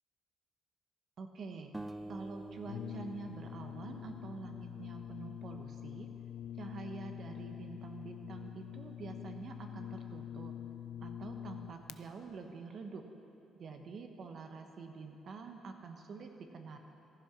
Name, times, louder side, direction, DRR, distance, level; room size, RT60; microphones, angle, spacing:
voice 1, 1.2-1.7 2.1-6.1 6.5-10.5 11.0-13.0 13.6-16.8, right 4 dB, 50° right, 5 dB, 1.0 m, -47 dB
sound 1, 1.7-4.9, right 1 dB, 10° right, 0.4 m, -48 dB
Brass instrument, 2.6-12.0, left 10 dB, 85° left, 0.3 m, -45 dB
15.0 x 10.5 x 5.9 m, 2.8 s
cardioid pair, 120°, 0 cm